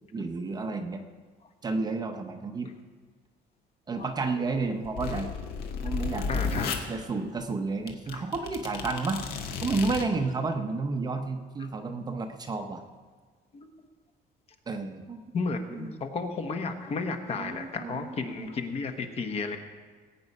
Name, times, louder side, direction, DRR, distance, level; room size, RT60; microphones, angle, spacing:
voice 1, 0.1-1.0 1.6-2.7 3.9-5.3 5.8-6.5 6.9-9.2 9.6-12.8 14.7-15.2 15.7-15.9 17.4-18.5, right 3 dB, 25° right, 5 dB, 0.8 m, -31 dB
sound 1, 4.5-6.8 7.5-7.6 7.9-10.0, left 5 dB, 65° left, 1.6 m, -33 dB
voice 2, 6.3-6.8 8.1-8.2 11.6-11.7 13.5-13.7 15.3-19.6, left 4 dB, 35° left, 6 dB, 1.2 m, -33 dB
19.5 x 8.6 x 5.4 m, 1.5 s
cardioid pair, 165°, 17 cm